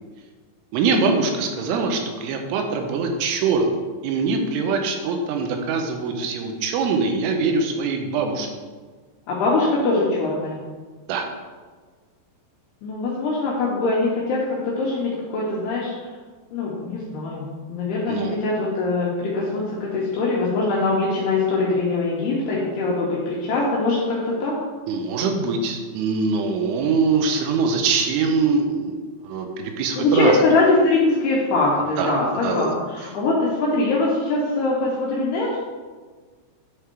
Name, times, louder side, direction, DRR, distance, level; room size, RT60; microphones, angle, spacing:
voice 1, 0.7-3.7 4.0-8.5 11.1-11.2 18.1-18.4 24.9-30.4 32.0-32.2 32.4-32.7, right 4 dB, 85° right, 4 dB, 3.2 m, -23 dB
voice 2, 9.3-10.6 12.8-16.1 16.5-24.6 30.0-35.6, left 2 dB, 75° left, -4 dB, 2.6 m, -22 dB
10.0 x 3.6 x 4.5 m, 1.5 s
omnidirectional pair, 5.4 m